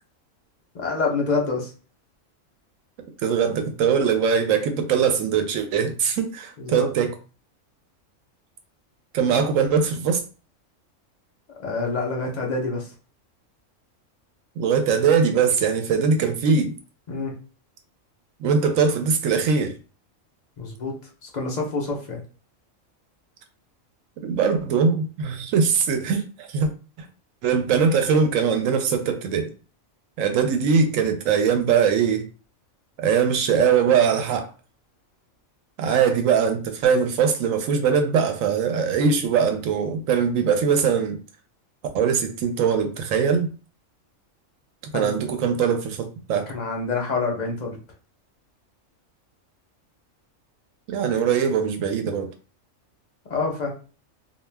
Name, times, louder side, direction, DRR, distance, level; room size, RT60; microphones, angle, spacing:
voice 1, 0.7-1.7 6.6-6.9 11.6-12.9 17.1-17.3 20.6-21.0 21.2-22.2 44.9-45.1 46.5-47.8 53.3-53.7, left 3 dB, 45° left, 0 dB, 0.6 m, -27 dB
voice 2, 3.2-7.1 9.1-10.2 14.6-16.7 18.4-19.7 24.2-26.7 27.0-27.1 27.4-29.5 30.2-32.2 33.0-34.5 35.8-41.2 41.9-43.5 44.9-46.5 50.9-52.3, right 6 dB, 80° right, 6 dB, 1.0 m, -21 dB
2.3 x 2.2 x 3.2 m, 0.36 s
omnidirectional pair, 1.4 m